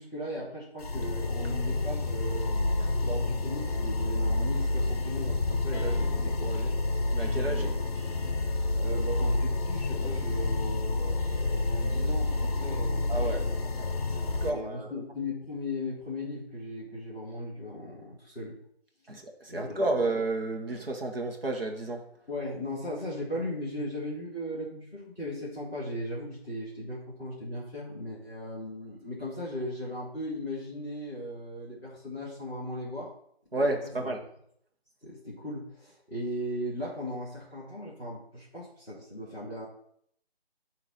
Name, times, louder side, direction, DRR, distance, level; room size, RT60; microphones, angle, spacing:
voice 1, 0.0-2.5 3.0-6.7 7.6-7.7 8.8-13.4 14.4-18.6 19.5-19.8 22.3-33.1 33.5-34.1 35.0-39.7, left 1 dB, 5° right, 1.1 m, -37 dB
sound 1, 0.8-14.5, left 2 dB, 40° left, 0.7 m, -29 dB
sound 2, 5.7-6.5 7.2-8.8 9.8-14.1 14.3-14.4, equal, 15° left, 1.5 m, -49 dB
voice 2, 7.1-7.7 13.1-13.9 14.2-14.9 19.1-22.1 33.5-34.2, right 2 dB, 65° right, 1.4 m, -31 dB
8.2 x 3.0 x 5.5 m
figure-of-eight pair, 165°, 31 cm